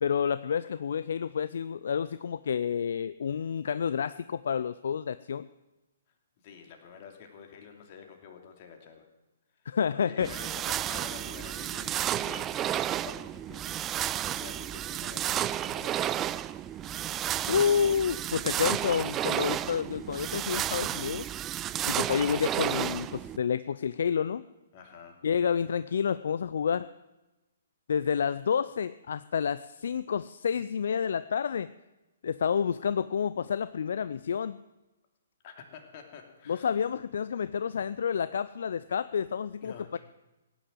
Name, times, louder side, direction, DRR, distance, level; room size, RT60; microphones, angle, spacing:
voice 1, 0.0-5.5 9.7-10.3 17.5-21.3 21.9-24.4 25.2-26.9 27.9-31.7 32.2-34.6 36.5-40.0, left 7 dB, 60° left, 15 dB, 0.5 m, -29 dB
voice 2, 6.4-9.1 9.6-13.8 14.3-17.0 24.7-25.3 35.4-36.7 39.6-40.0, left 7 dB, 40° left, 4 dB, 2.9 m, -49 dB
sound 1, 10.2-23.4, right 11 dB, 20° right, 0.4 m, -32 dB
17.0 x 10.0 x 7.6 m, 1.0 s
figure-of-eight pair, 125°, 0 cm